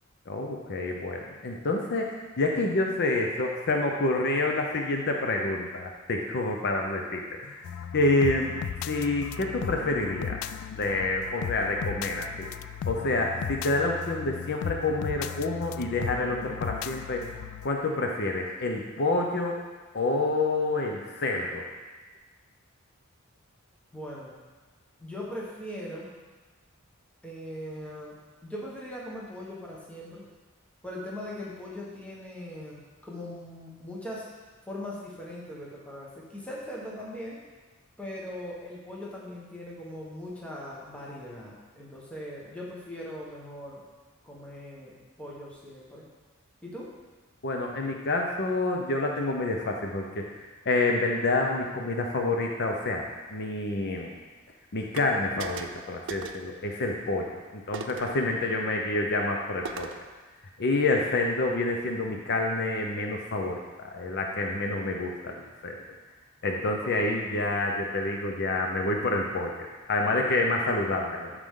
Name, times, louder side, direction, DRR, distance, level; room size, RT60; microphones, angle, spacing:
voice 1, 0.3-8.6 8.9-10.4 10.8-12.5 12.9-17.2 17.6-19.6 19.9-21.7 47.4-50.3 50.7-53.0 53.3-54.2 54.7-60.0 60.6-65.8 66.4-69.5 69.9-71.3, left 2 dB, 55° left, 1 dB, 0.7 m, -28 dB
sound 1, 7.6-17.7, left 8 dB, 80° left, 0.3 m, -36 dB
voice 2, 23.9-24.4 25.0-26.1 27.2-28.1 28.4-30.2 30.8-34.3 34.7-37.4 38.0-43.8 44.2-46.1 46.6-46.9 66.8-67.0 70.1-70.5, left 1 dB, 5° left, -5 dB, 1.3 m, -40 dB
sound 2, 54.9-55.1 55.4-55.8 56.1-56.5 57.7-58.2 59.6-60.1, right 5 dB, 60° right, 0.5 m, -38 dB
13.0 x 5.0 x 3.8 m, 1.3 s
head